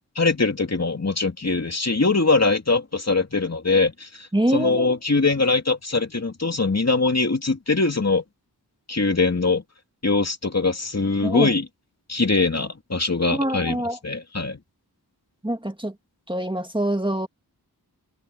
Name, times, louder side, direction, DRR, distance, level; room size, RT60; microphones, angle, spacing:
voice 1, 0.1-8.2 8.9-9.6 10.0-11.7 12.1-13.8 14.0-14.6, left 3 dB, 40° left, 2.9 m, -22 dB
voice 2, 4.3-4.9 11.2-11.5 13.3-14.0 15.4-15.9 16.3-17.3, right 1 dB, 10° right, 1.9 m, -25 dB
wide cardioid pair, 65°, 38 cm